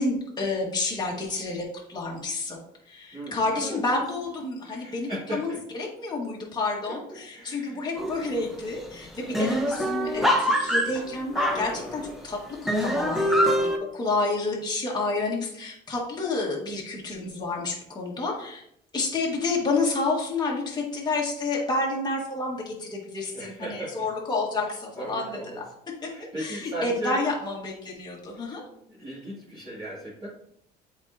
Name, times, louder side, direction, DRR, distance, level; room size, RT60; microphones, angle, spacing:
voice 1, 0.0-1.6 1.9-2.6 2.9-12.4 12.8-13.7 13.9-18.6 18.9-25.6 26.0-26.1 26.4-28.6, left 3 dB, 25° left, -3 dB, 1.8 m, -29 dB
voice 2, 3.1-3.8 4.6-5.6 6.8-7.8 9.2-9.5 23.3-24.1 25.0-25.6 26.1-27.2 28.9-30.3, right 1 dB, 25° right, -10 dB, 2.3 m, -36 dB
sound 1, 8.0-8.4 8.7-8.8 9.0-12.2 12.7-13.8, equal, ahead, 0.9 m, -25 dB
7.8 x 4.3 x 2.8 m, 0.71 s
cardioid pair, 110°, 17 cm